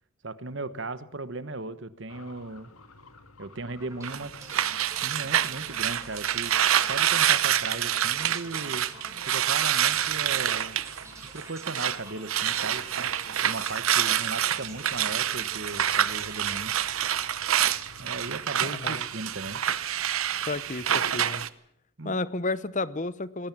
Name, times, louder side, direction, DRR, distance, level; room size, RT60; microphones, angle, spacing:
voice 1, 0.2-2.7 3.4-4.3 5.0-6.5 6.8-8.9 9.2-10.8 11.3-13.1 13.4-16.7 18.0-19.6 22.0-22.2, right 2 dB, 55° right, 14 dB, 1.2 m, -37 dB
sound 1, 2.1-19.6, left 4 dB, 90° left, 1.8 m, -51 dB
sound 2, 3.8-17.9, right 2 dB, 15° right, 5.8 m, -49 dB
sound 3, 4.0-12.0 12.2-21.5, right 10 dB, 75° right, 0.9 m, -27 dB
voice 2, 18.6-19.1 20.4-21.5 22.0-23.5, left 3 dB, 35° left, 17 dB, 0.8 m, -32 dB
20.0 x 18.0 x 7.5 m, 0.71 s
head